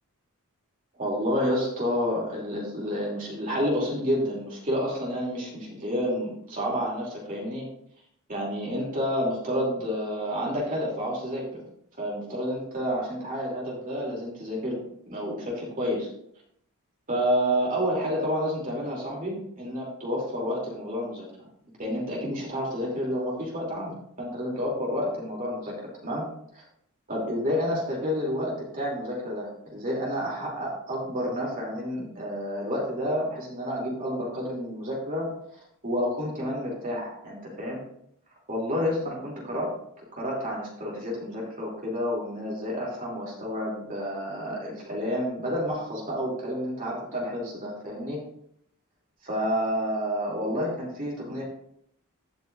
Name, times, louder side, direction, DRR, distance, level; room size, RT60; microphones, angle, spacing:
voice 1, 1.0-7.7 8.3-11.6 12.0-14.8 15.0-16.1 17.1-21.5 21.8-25.7 26.0-26.2 26.5-26.6 27.1-35.3 35.8-37.8 38.5-39.7 40.1-48.2 49.2-51.4, equal, 40° right, -4 dB, 2.9 m, -29 dB
16.0 x 6.0 x 2.5 m, 0.70 s
head